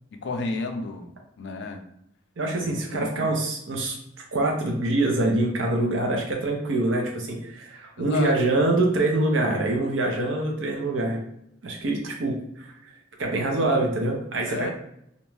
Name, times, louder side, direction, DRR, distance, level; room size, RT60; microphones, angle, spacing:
voice 1, 0.1-1.8 2.6-3.3 8.0-8.3 13.6-13.9 14.5-14.7, left 3 dB, 60° left, 5 dB, 0.4 m, -33 dB
voice 2, 2.4-4.0 4.3-11.2 11.6-12.7 13.2-14.7, right 2 dB, 75° right, 1 dB, 0.6 m, -25 dB
2.5 x 2.2 x 3.1 m, 0.76 s
head